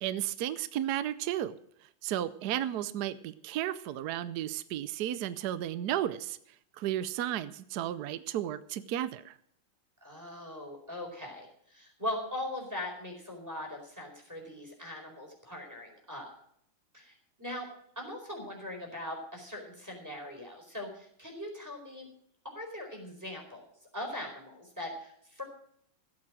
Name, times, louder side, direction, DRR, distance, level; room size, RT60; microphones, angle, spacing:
voice 1, 0.0-1.5 1.8-6.4 6.7-9.4, right 12 dB, 70° right, 14 dB, 0.9 m, -33 dB
voice 2, 10.0-16.3 16.9-17.7 18.0-22.1 22.4-23.6 23.9-25.4, left 1 dB, 10° right, 1 dB, 4.3 m, -40 dB
15.5 x 8.7 x 6.2 m, 0.67 s
omnidirectional pair, 2.3 m